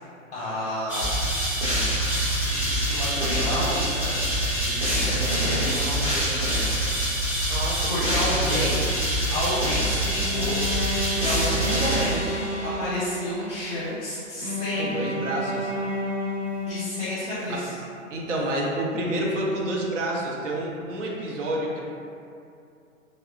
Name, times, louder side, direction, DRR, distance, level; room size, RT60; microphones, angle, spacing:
voice 1, 0.3-1.2 2.5-6.3 7.6-8.8 9.3-10.5 11.1-14.9 16.7-17.7, left 1 dB, 35° left, -10 dB, 0.6 m, -31 dB
sound 1, 0.9-12.8, right 1 dB, 5° right, 0.4 m, -25 dB
voice 2, 7.5-9.0 14.8-15.7 17.5-17.6 18.1-21.8, right 1 dB, 65° right, -2 dB, 0.6 m, -29 dB
Bowed string instrument, 10.2-13.4 14.4-17.3, left 1 dB, 30° right, 0.8 m, -31 dB
2.9 x 2.0 x 2.4 m, 2.5 s
figure-of-eight pair, 110°, 39 cm